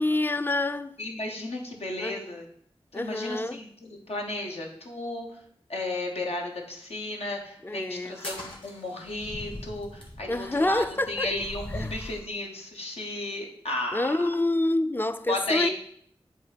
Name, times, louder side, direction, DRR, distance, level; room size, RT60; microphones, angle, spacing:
voice 1, 0.0-1.0 2.0-2.2 2.9-3.6 7.6-8.2 10.3-11.3 11.8-11.9 13.9-15.7, left 2 dB, 20° left, 0.3 m, -27 dB
voice 2, 1.0-2.5 2.9-5.4 5.7-14.2 15.3-15.7, left 2 dB, 85° left, 1.1 m, -34 dB
sound 1, 8.1-12.3, left 1 dB, 55° left, 1.8 m, -40 dB
7.8 x 2.8 x 5.1 m
cardioid pair, 45°, 10 cm